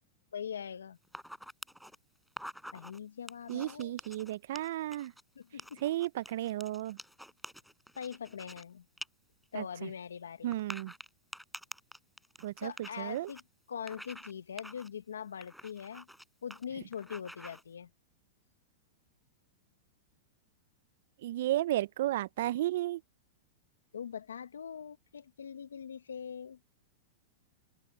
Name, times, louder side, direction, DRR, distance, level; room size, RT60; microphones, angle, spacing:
voice 1, 0.3-1.0 2.7-4.0 5.3-5.8 8.0-8.8 9.5-10.6 12.6-13.4 13.7-16.1 16.4-17.9 23.9-26.6, left 7 dB, 90° left, 1.0 m, -42 dB
sound 1, 1.0-2.0 2.3-3.0 3.3-5.2 5.6-8.6 9.0-9.1 9.4-9.5 10.5-13.4 13.9-14.3 14.6-14.9 15.4-16.2 16.5-16.6 16.9-17.6, equal, ahead, 5.6 m, -47 dB
voice 2, 3.5-5.1 5.8-7.0 9.5-9.9 10.4-10.9 12.4-13.3 21.2-23.0, right 14 dB, 65° right, 0.4 m, -33 dB
hypercardioid pair, 115°, 0 cm